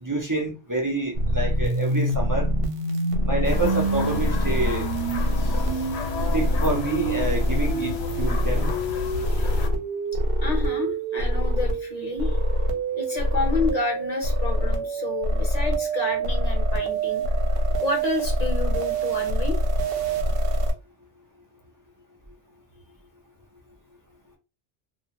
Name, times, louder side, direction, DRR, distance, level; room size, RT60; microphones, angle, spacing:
voice 1, 0.0-2.5 3.3-4.9 5.4-5.5 6.3-8.7, right 2 dB, 25° right, 0.5 m, -27 dB
sound 1, 1.1-20.7, right 1 dB, 65° right, 0.8 m, -25 dB
sound 2, 3.4-9.7, left 4 dB, 75° left, 0.9 m, -31 dB
voice 2, 10.4-12.4 13.0-17.4 17.8-19.6, left 3 dB, 40° left, 0.9 m, -30 dB
2.3 x 2.2 x 2.9 m
omnidirectional pair, 1.1 m